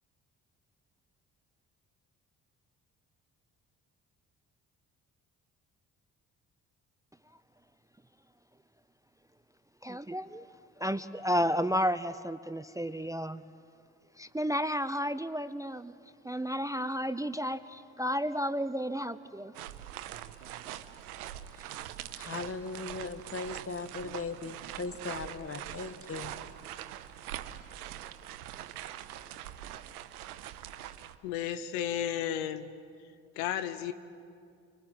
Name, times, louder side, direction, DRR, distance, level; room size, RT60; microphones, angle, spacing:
voice 1, 9.8-10.4 10.8-13.4 14.2-15.9 16.2-19.5, equal, 10° right, 14 dB, 0.6 m, -32 dB
sound 1, 19.5-31.2, right 12 dB, 90° right, 0.7 m, -43 dB
voice 2, 22.2-26.3, left 4 dB, 30° left, 11 dB, 1.6 m, -38 dB
voice 3, 31.2-32.7 33.4-33.9, left 10 dB, 80° left, 12 dB, 0.9 m, -33 dB
25.0 x 23.0 x 7.7 m, 2.4 s
hypercardioid pair, 45°, 43 cm